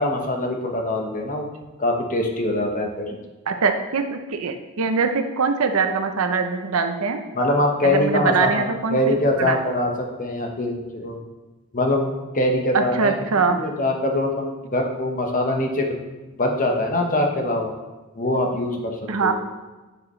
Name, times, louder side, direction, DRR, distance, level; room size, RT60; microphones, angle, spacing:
voice 1, 0.0-1.5 1.8-3.2 7.3-11.2 11.7-13.1 13.5-15.9 16.4-17.7 18.1-18.9 19.2-19.3, left 1 dB, 40° left, 2 dB, 1.0 m, -23 dB
voice 2, 3.5-7.2 7.8-9.6 12.7-13.6 19.1-19.3, right 5 dB, 85° right, 7 dB, 0.7 m, -23 dB
9.7 x 4.9 x 3.2 m, 1.2 s
head